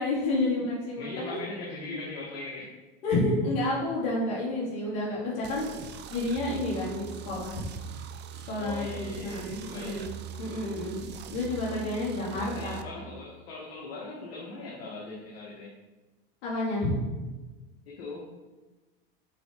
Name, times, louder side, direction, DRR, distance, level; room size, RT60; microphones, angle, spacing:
voice 1, 0.0-1.4 1.9-2.0 3.0-5.7 6.1-7.6 8.5-10.1 10.4-11.0 11.3-12.8 16.4-17.0, left 2 dB, 65° left, -5 dB, 2.6 m, -30 dB
voice 2, 1.0-2.7 8.6-10.1 12.3-15.7 17.9-18.3, left 2 dB, 85° left, -4 dB, 1.8 m, -40 dB
sound 1, 5.4-12.8, right 7 dB, 35° right, 0.6 m, -42 dB
7.6 x 4.3 x 5.1 m, 1.2 s
supercardioid pair, 110°, 30 cm